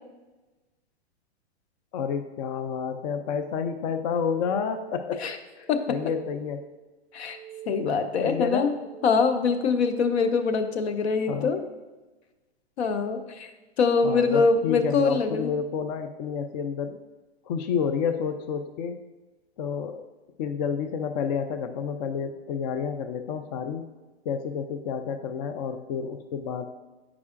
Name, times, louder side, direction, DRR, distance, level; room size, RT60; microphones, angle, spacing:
voice 1, 1.9-5.3 5.6-6.6 8.2-8.7 11.3-11.5 14.0-17.0 17.5-19.0 19.6-20.0 20.4-23.9 24.3-26.6, left 7 dB, 40° left, 8 dB, 0.4 m, -30 dB
sound 1, 4.1-5.2 5.6-6.7 7.1-8.2 8.7-9.8, right 11 dB, 25° right, 0.4 m, -44 dB
voice 2, 7.7-8.7 9.0-11.6 12.8-13.5 13.8-15.5, left 4 dB, 70° left, 8 dB, 0.8 m, -24 dB
9.4 x 4.8 x 2.5 m, 1.2 s
hypercardioid pair, 130°, 33 cm